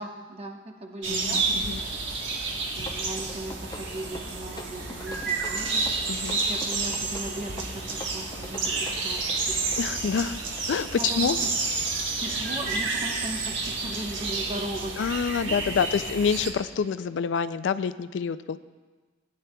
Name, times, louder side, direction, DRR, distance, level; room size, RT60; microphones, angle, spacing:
voice 1, 0.0-1.7 2.7-5.8 6.5-9.9 11.0-11.5 11.9-15.0 15.5-15.8, right 1 dB, 35° right, 1 dB, 1.1 m, -38 dB
sound 1, 1.0-16.5, right 3 dB, 85° right, 1.3 m, -30 dB
voice 2, 1.1-1.8 6.1-6.4 9.8-10.9 11.1-11.4 15.0-18.6, left 6 dB, 80° left, 14 dB, 0.3 m, -27 dB
sound 2, 2.5-12.9, left 2 dB, 20° left, 0.7 m, -45 dB
18.0 x 9.6 x 2.3 m, 1.3 s
head